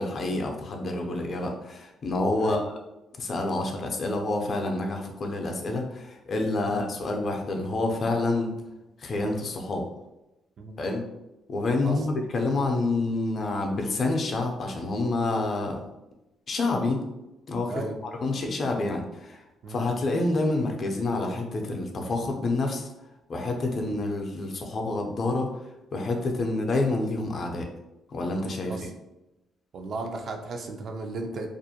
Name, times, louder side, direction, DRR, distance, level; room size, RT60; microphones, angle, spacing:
voice 1, 0.0-2.7 3.2-8.5 9.0-9.9 10.8-11.0 11.5-15.8 16.5-17.0 17.5-19.4 19.7-22.9 23.3-25.5 25.9-27.7 28.1-28.9, left 2 dB, 50° left, 2 dB, 0.5 m, -28 dB
voice 2, 29.7-31.5, right 3 dB, 55° right, 3 dB, 0.4 m, -35 dB
2.5 x 2.1 x 2.8 m, 0.96 s
cardioid pair, 90°, 0 cm